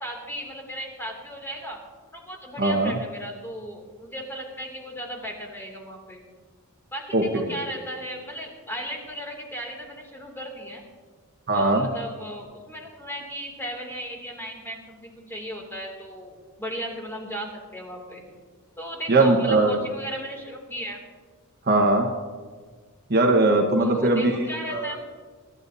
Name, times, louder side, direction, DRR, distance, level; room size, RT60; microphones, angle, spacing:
voice 1, 0.0-1.8 2.1-6.2 6.9-10.8 11.5-18.2 18.8-21.0 23.8-25.0, equal, 10° left, 0 dB, 2.7 m, -36 dB
voice 2, 2.6-2.9 7.1-7.6 11.5-11.9 19.1-19.8 21.7-22.1 23.1-24.3 24.7-25.0, right 2 dB, 45° right, 3 dB, 1.3 m, -20 dB
24.0 x 12.5 x 2.7 m, 1.5 s
head